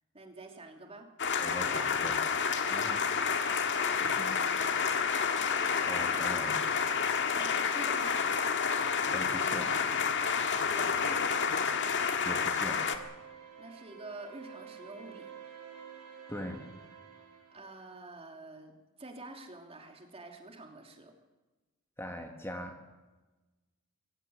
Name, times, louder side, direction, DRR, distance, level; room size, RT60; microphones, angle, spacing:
voice 1, 0.1-1.1 2.5-3.3 7.3-8.2 10.5-11.3 13.6-15.3 17.5-21.1, right 2 dB, 30° right, 3 dB, 3.0 m, -47 dB
sound 1, 1.2-13.0, left 6 dB, 55° left, 1.7 m, -29 dB
voice 2, 1.4-2.4 2.7-3.0 4.0-4.4 5.8-6.6 8.7-9.8 12.0-12.9 16.3-16.7 22.0-22.8, equal, 10° left, 4 dB, 1.6 m, -42 dB
sound 2, 11.0-18.0, right 7 dB, 85° right, 7.8 m, -50 dB
24.5 x 15.5 x 8.1 m, 1.2 s
head